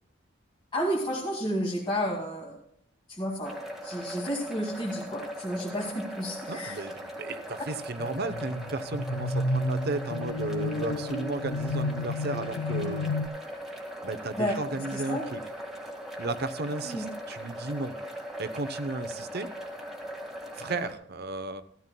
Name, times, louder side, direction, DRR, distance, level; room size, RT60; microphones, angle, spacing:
voice 1, 0.7-2.6 3.1-6.8 14.4-14.6 14.9-15.2 16.8-17.1, equal, 25° left, -5 dB, 2.1 m, -31 dB
sound 1, 3.4-20.9, equal, ahead, 1.8 m, -39 dB
voice 2, 6.5-13.1 14.0-15.4 16.2-17.9 18.4-19.5 20.6-21.6, right 3 dB, 50° right, 12 dB, 0.8 m, -34 dB
sound 2, 8.0-13.3, left 2 dB, 90° left, 0.6 m, -31 dB
15.0 x 13.5 x 2.2 m, 0.69 s
head